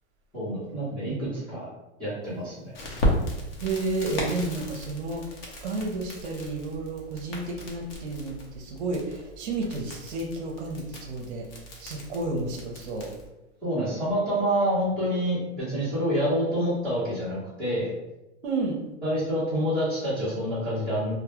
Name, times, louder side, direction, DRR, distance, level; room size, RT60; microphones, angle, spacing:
voice 1, 0.3-1.7 2.0-2.7 13.6-17.9 19.0-21.1, equal, 5° left, -14 dB, 0.7 m, -27 dB
Crackle, 2.7-13.3, equal, 55° left, 0.7 m, -35 dB
voice 2, 3.6-11.5 11.8-13.1 18.4-18.8, right 2 dB, 65° right, 1 dB, 0.6 m, -31 dB
2.1 x 2.1 x 2.9 m, 0.95 s
supercardioid pair, 165°, 36 cm